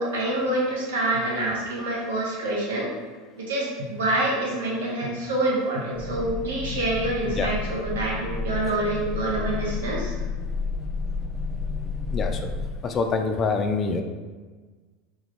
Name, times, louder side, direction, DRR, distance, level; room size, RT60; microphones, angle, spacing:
voice 1, 0.0-2.9 3.4-10.1, right 1 dB, 70° right, -3 dB, 0.7 m, -26 dB
sound 1, 6.0-12.6, left 4 dB, 20° right, 0.6 m, -31 dB
voice 2, 12.1-12.5 12.8-14.0, left 4 dB, 35° left, 6 dB, 0.4 m, -26 dB
3.8 x 2.3 x 3.5 m, 1.4 s
figure-of-eight pair, 75°, 0 cm